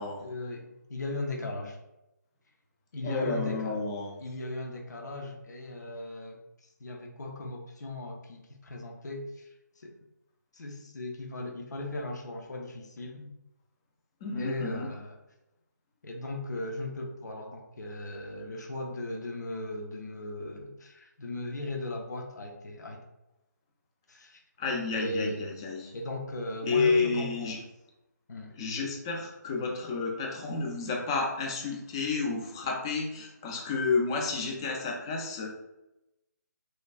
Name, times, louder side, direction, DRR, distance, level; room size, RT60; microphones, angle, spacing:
voice 1, 0.0-1.8 2.9-3.8 4.2-9.9 10.5-13.3 14.4-15.2 16.0-23.0 24.1-24.4 24.9-25.4 25.9-27.6 28.3-28.6, left 2 dB, 65° left, 1 dB, 0.5 m, -37 dB
voice 2, 3.0-4.1 14.2-14.9 24.6-25.9 26.6-27.6 28.6-35.5, left 4 dB, 15° left, 0 dB, 0.3 m, -30 dB
3.2 x 2.2 x 2.4 m, 0.91 s
figure-of-eight pair, 155°, 10 cm